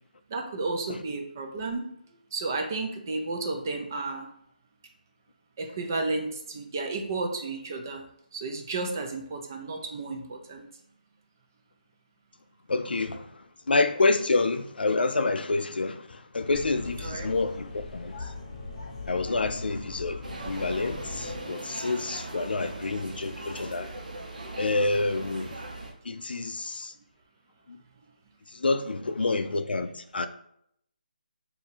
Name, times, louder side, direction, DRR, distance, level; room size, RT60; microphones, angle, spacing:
voice 1, 0.3-1.8 2.3-4.3 5.6-8.0 8.3-10.7 17.0-17.3, right 3 dB, 20° right, 0.3 m, -32 dB
voice 2, 12.7-13.3 13.7-18.2 19.1-23.9 24.6-25.6 26.0-26.9 28.5-30.3, left 3 dB, 90° left, 0.4 m, -28 dB
sound 1, 16.5-21.4, left 3 dB, 30° left, 0.8 m, -40 dB
sound 2, 20.2-25.9, right 2 dB, 55° right, 0.7 m, -39 dB
2.9 x 2.7 x 4.1 m
hypercardioid pair, 170°, 5 cm